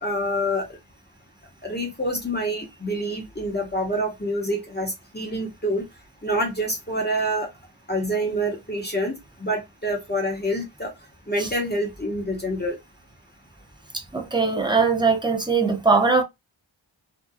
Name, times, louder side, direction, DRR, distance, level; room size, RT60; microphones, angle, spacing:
voice 1, 0.0-0.8 1.6-5.8 6.2-7.5 7.9-10.9 11.3-12.8, equal, 20° left, 0.8 m, -27 dB
voice 2, 14.1-16.2, right 4 dB, 10° right, 0.7 m, -20 dB
2.7 x 2.2 x 2.3 m
wide cardioid pair, 45°, 48 cm